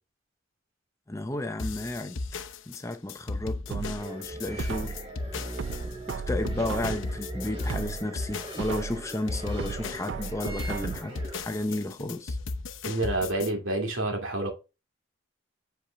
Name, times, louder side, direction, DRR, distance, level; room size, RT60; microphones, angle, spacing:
voice 1, 1.1-2.2 2.7-5.0 6.1-12.4, left 1 dB, 15° left, 0.5 m, -33 dB
sound 1, 1.6-13.5, left 3 dB, 70° left, 0.7 m, -36 dB
sound 2, 3.7-5.1 5.6-7.2 7.6-9.1 9.6-11.2 11.6-11.7, right 6 dB, 60° right, 0.3 m, -36 dB
sound 3, 4.0-11.4, right 1 dB, 25° right, 3.7 m, -40 dB
voice 2, 12.8-14.5, right 2 dB, 80° right, 2.5 m, -28 dB
7.7 x 4.5 x 3.3 m
head